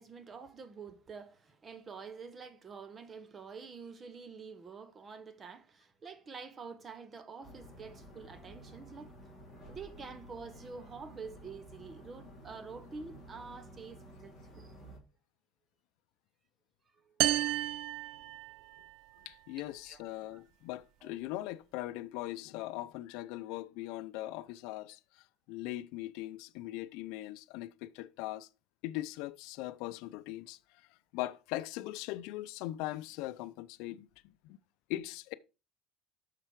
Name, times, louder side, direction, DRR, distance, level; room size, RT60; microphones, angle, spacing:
voice 1, 0.0-9.3 9.7-14.7 16.9-17.2 18.6-18.7 19.9-20.0 20.3-20.4 21.0-21.1, right 5 dB, 20° right, 0.8 m, -48 dB
sound 1, 7.4-15.0, equal, ahead, 3.7 m, -52 dB
sound 2, 17.2-18.9, right 15 dB, 55° right, 0.3 m, -32 dB
voice 2, 19.2-28.5 28.8-30.6 31.1-34.1 34.4-34.6 34.9-35.3, left 16 dB, 70° left, 0.5 m, -40 dB
7.7 x 6.7 x 4.7 m
cardioid pair, 175°, 0 cm